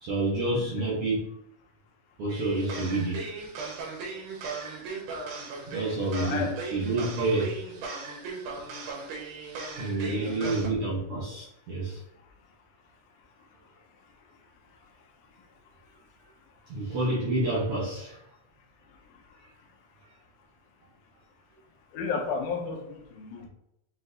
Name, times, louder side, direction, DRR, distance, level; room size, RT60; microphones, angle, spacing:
voice 1, 0.0-1.2 2.2-3.3 5.7-7.6 9.8-12.0 16.7-18.2, right 2 dB, 70° right, -7 dB, 1.4 m, -28 dB
voice 2, 0.6-0.9 6.2-6.5 7.4-7.5 10.0-10.7 21.9-23.5, left 5 dB, 80° left, 3 dB, 2.0 m, -34 dB
sound 1, 2.3-10.7, right 4 dB, 85° right, 2.3 m, -37 dB
6.2 x 2.6 x 2.5 m, 0.83 s
omnidirectional pair, 3.6 m